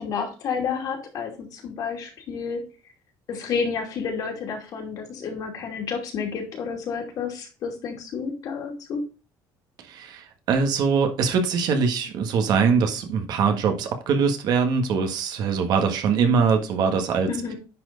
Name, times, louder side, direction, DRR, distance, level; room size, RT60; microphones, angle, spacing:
voice 1, 0.0-2.6 3.3-9.0 17.3-17.5, left 5 dB, 50° left, 1 dB, 2.8 m, -30 dB
voice 2, 9.9-17.3, right 5 dB, 55° right, 5 dB, 1.6 m, -22 dB
10.5 x 4.5 x 3.9 m, 0.33 s
cardioid pair, 155°, 8 cm